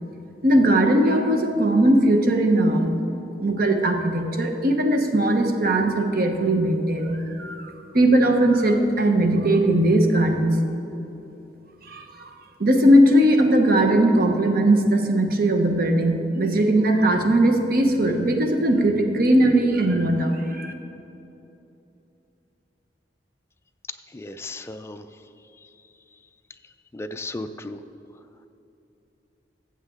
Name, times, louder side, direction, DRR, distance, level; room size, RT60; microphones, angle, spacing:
voice 1, 0.4-2.9 3.4-10.6 11.8-12.3 12.6-20.7, right 1 dB, 55° right, 5 dB, 0.9 m, -19 dB
voice 2, 24.1-25.1 26.9-27.8, left 2 dB, 15° left, 8 dB, 0.3 m, -35 dB
14.5 x 7.3 x 3.7 m, 2.9 s
head